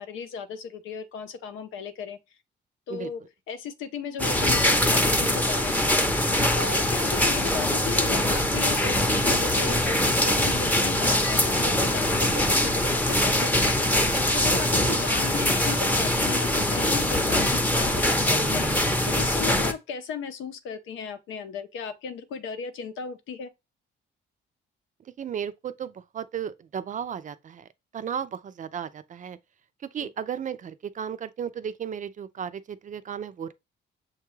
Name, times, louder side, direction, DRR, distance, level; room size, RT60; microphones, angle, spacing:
voice 1, 0.0-2.2 2.9-3.2 3.5-6.0 6.5-14.0 14.3-18.7 19.1-23.5 30.0-30.1, left 6 dB, 85° left, 0.7 m, -36 dB
sound 1, 4.2-19.7, left 1 dB, 10° left, 0.6 m, -23 dB
voice 2, 25.2-27.7 27.9-29.4 29.9-33.5, right 8 dB, 40° right, 0.4 m, -34 dB
6.4 x 2.3 x 3.1 m
cardioid pair, 90°, 20 cm